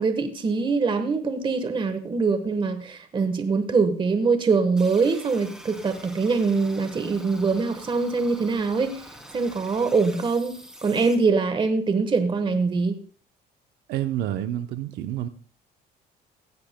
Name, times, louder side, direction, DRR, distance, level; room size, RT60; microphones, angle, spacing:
voice 1, 0.0-9.0 9.3-10.5 10.8-13.0, right 4 dB, 30° right, 8 dB, 1.2 m, -23 dB
sound 1, 4.8-11.1, equal, 5° right, 2.8 m, -45 dB
voice 2, 13.9-15.3, right 12 dB, 75° right, 9 dB, 0.7 m, -28 dB
16.0 x 13.5 x 2.2 m, 0.42 s
cardioid pair, 110°, 17 cm